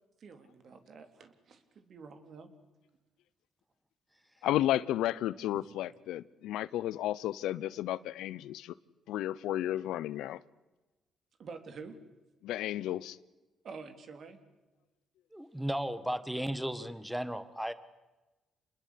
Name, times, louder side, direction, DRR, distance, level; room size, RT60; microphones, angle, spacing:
voice 1, 0.2-2.5 11.4-12.0 13.6-14.4, right 5 dB, 55° right, 8 dB, 3.7 m, -48 dB
voice 2, 4.4-8.7 9.1-10.4 12.4-13.2, left 13 dB, 90° left, 19 dB, 0.8 m, -33 dB
voice 3, 15.3-17.7, equal, 5° right, 14 dB, 1.6 m, -35 dB
28.0 x 21.0 x 8.6 m, 1.1 s
cardioid pair, 90°, 0 cm